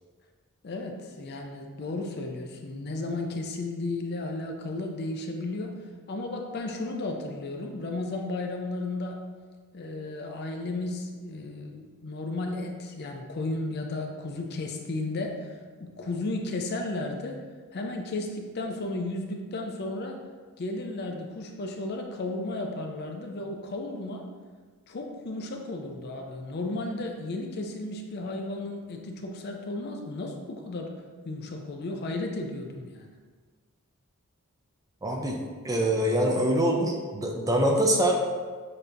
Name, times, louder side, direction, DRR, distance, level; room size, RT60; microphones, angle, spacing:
voice 1, 0.6-5.8 6.1-9.2 9.7-15.5 15.8-17.4 17.7-20.2 20.6-24.3 24.9-30.9 31.2-33.1, left 2 dB, 45° left, 3 dB, 0.5 m, -34 dB
voice 2, 35.0-35.4 35.6-38.2, right 1 dB, 15° right, 0 dB, 0.4 m, -24 dB
6.8 x 2.8 x 2.6 m, 1.5 s
head